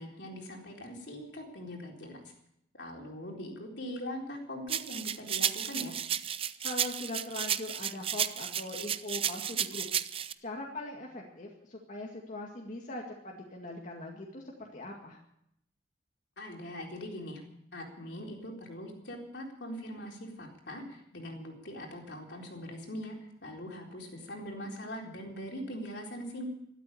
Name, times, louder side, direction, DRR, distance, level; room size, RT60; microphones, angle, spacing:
voice 1, 0.0-2.2 2.7-6.0 16.4-17.4 17.7-26.4, equal, 70° left, 0 dB, 4.1 m, -42 dB
sound 1, 4.7-10.3, right 9 dB, 30° right, 0.5 m, -33 dB
voice 2, 6.6-9.9 10.1-15.2, left 2 dB, 45° left, -1 dB, 2.2 m, -41 dB
13.0 x 13.0 x 8.7 m, 0.77 s
head